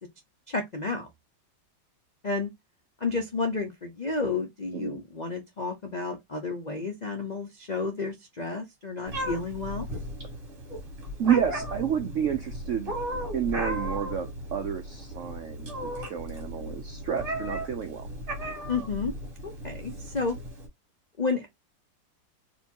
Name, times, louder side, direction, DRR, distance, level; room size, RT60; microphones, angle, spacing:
voice 1, 0.5-1.1 2.2-2.5 3.0-9.9 18.7-19.1 19.4-20.4 21.2-21.5, left 4 dB, 75° left, 0.4 m, -31 dB
Meow, 9.1-20.7, equal, 45° right, 2.2 m, -36 dB
voice 2, 11.2-12.9 13.3-18.1, right 9 dB, 75° right, 0.6 m, -30 dB
4.4 x 3.1 x 2.8 m
omnidirectional pair, 2.0 m